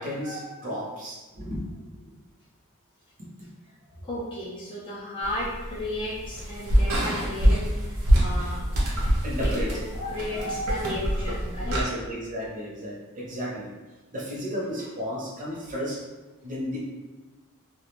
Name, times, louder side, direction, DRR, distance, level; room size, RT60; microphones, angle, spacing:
voice 1, 0.0-1.7 1.9-2.2 8.4-8.5 8.9-10.9 11.6-13.7 14.1-16.0 16.4-16.9, equal, 40° right, -5 dB, 0.7 m, -33 dB
voice 2, 4.0-8.6 9.4-9.8 10.1-11.8, left 1 dB, 25° left, -7 dB, 0.4 m, -34 dB
sound 1, 5.2-11.8, equal, 80° right, 0.8 m, -25 dB
2.3 x 2.1 x 2.9 m, 1.2 s
head